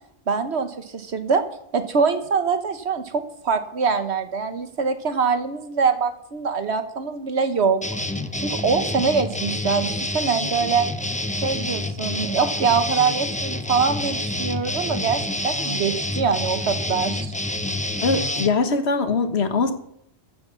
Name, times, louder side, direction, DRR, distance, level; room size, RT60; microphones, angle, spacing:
voice 1, 0.3-1.4 1.7-7.8 8.4-10.9 11.4-17.4, right 5 dB, 75° right, 9 dB, 1.4 m, -23 dB
sound 1, 7.8-18.5, left 1 dB, 10° left, 0.7 m, -28 dB
voice 2, 18.0-19.7, left 4 dB, 75° left, 9 dB, 1.6 m, -22 dB
14.5 x 7.8 x 6.9 m, 0.74 s
omnidirectional pair, 1.1 m